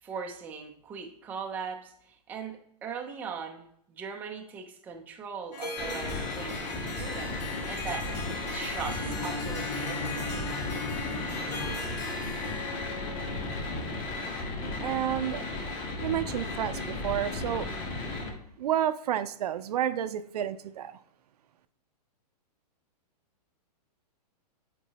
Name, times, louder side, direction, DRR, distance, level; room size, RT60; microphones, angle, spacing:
voice 1, 0.0-7.3 7.7-8.1 8.5-10.4, right 6 dB, 10° right, 0.4 m, -39 dB
Harp, 5.5-14.3, left 3 dB, 90° left, 1.5 m, -40 dB
sound 1, 5.8-18.3, left 2 dB, 25° left, 1.2 m, -35 dB
sound 2, 8.8-12.7, left 2 dB, 55° left, 2.2 m, -39 dB
voice 2, 14.8-15.4 16.0-17.7 18.6-21.0, right 11 dB, 65° right, 0.5 m, -30 dB
8.4 x 4.5 x 2.9 m
hypercardioid pair, 155°, 21 cm